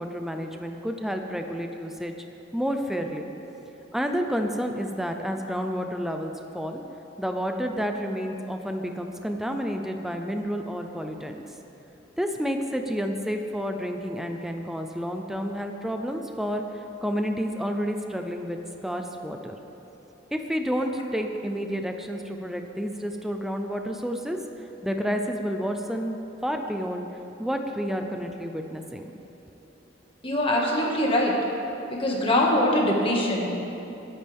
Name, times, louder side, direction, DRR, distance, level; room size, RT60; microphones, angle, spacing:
voice 1, 0.0-2.1 2.5-3.3 3.9-6.8 7.2-11.4 12.2-16.6 17.0-19.6 20.3-24.4 24.8-27.1 27.4-29.1, equal, ahead, 4 dB, 0.6 m, -30 dB
voice 2, 30.2-31.3 31.9-33.6, left 1 dB, 30° left, -2 dB, 1.9 m, -23 dB
22.0 x 9.9 x 3.6 m, 3.0 s
head